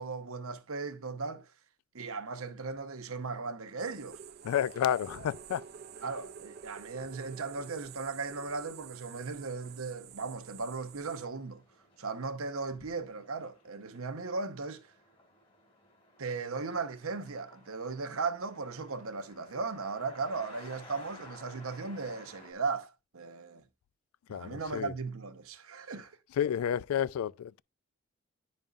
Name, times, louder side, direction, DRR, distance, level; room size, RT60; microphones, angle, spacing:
voice 1, 0.0-1.5 1.9-4.2 6.0-11.6 12.0-14.9 16.2-23.6 24.3-26.1, right 4 dB, 80° right, 0.9 m, -37 dB
sound 1, 3.8-11.3, right 7 dB, 45° right, 0.4 m, -49 dB
voice 2, 4.4-5.6 24.3-24.9 26.4-27.6, left 9 dB, 90° left, 0.3 m, -30 dB
sound 2, 4.8-22.5, left 2 dB, 25° left, 1.9 m, -58 dB
10.5 x 5.3 x 2.4 m
head